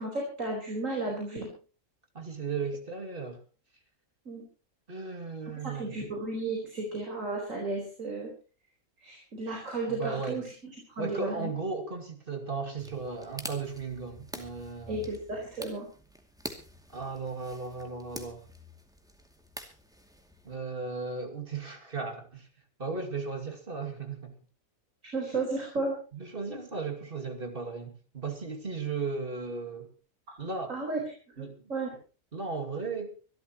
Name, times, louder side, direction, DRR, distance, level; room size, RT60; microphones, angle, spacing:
voice 1, 0.0-1.5 4.2-4.4 5.5-8.3 9.0-10.5 10.9-11.5 14.9-15.9 25.1-26.0 30.7-31.0 31.4-31.9, right 2 dB, 65° right, 4.8 m, -33 dB
voice 2, 2.1-3.4 4.9-6.1 9.9-10.4 11.0-15.1 16.9-18.5 20.4-22.5 22.8-24.3 26.1-29.9 30.4-30.7 31.4-31.6 32.3-33.1, right 4 dB, 40° right, 2.5 m, -36 dB
sound 1, 12.8-20.6, equal, 5° right, 2.4 m, -46 dB
25.5 x 13.0 x 3.0 m
omnidirectional pair, 1.4 m